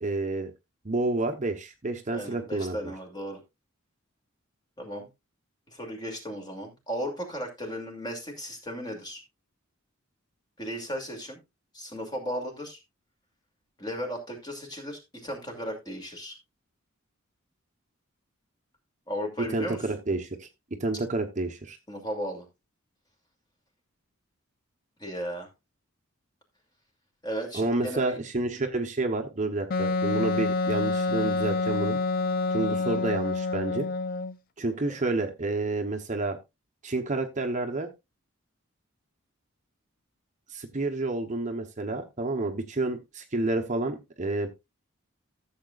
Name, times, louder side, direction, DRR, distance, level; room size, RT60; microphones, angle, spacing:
voice 1, 0.0-0.5 0.8-2.9 19.5-21.8 27.5-32.0 32.5-33.9 34.6-36.4 36.8-37.9 40.5-44.5, right 2 dB, 35° right, 4 dB, 0.9 m, -29 dB
voice 2, 2.1-3.4 4.8-5.1 5.7-9.2 10.6-11.4 11.7-12.8 13.8-16.3 19.1-19.9 21.9-22.4 25.0-25.5 27.2-28.2 32.6-32.8 34.9-35.0, equal, 20° left, 2 dB, 2.7 m, -35 dB
Wind instrument woodwind instrument, 29.7-34.4, left 3 dB, 45° left, 0.5 m, -27 dB
14.5 x 7.4 x 2.4 m, 0.23 s
head